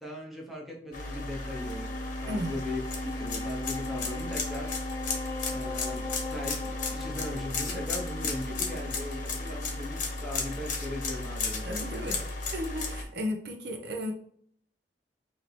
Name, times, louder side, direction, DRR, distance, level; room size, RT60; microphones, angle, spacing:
voice 1, 0.0-4.7 5.5-12.2, left 1 dB, ahead, -2 dB, 0.9 m, -39 dB
sound 1, 0.9-13.0, left 3 dB, 45° left, 0.9 m, -34 dB
Wind instrument woodwind instrument, 1.3-10.8, left 2 dB, 20° left, 0.3 m, -40 dB
voice 2, 11.6-12.2 12.5-14.1, equal, 65° right, 4 dB, 0.7 m, -34 dB
4.4 x 2.8 x 3.2 m, 0.62 s
head